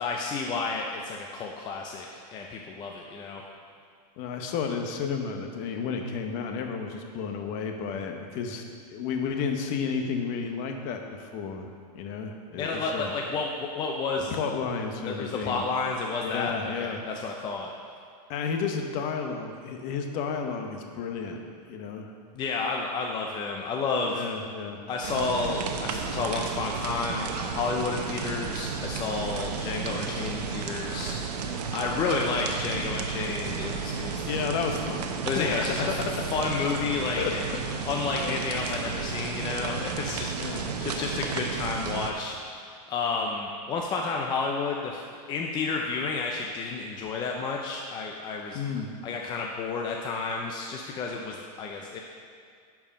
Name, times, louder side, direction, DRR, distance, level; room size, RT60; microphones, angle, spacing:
voice 1, 0.0-2.1 2.3-3.4 12.6-14.3 15.0-17.7 22.3-24.2 24.9-34.2 35.2-35.9 36.3-37.5 37.8-48.6 49.0-52.0, left 4 dB, 20° left, 0 dB, 0.5 m, -31 dB
voice 2, 4.2-8.6 8.9-13.1 14.3-15.6 16.2-17.0 18.3-21.4 21.7-22.1 24.1-24.8 34.0-36.1 36.6-36.7 37.2-37.9 38.2-38.4 40.4-40.6 48.5-48.9, left 6 dB, 40° left, 4 dB, 0.9 m, -32 dB
sound 1, 25.0-42.1, right 6 dB, 75° right, 0.9 m, -33 dB
11.0 x 4.8 x 5.1 m, 2.2 s
supercardioid pair, 150°, 21 cm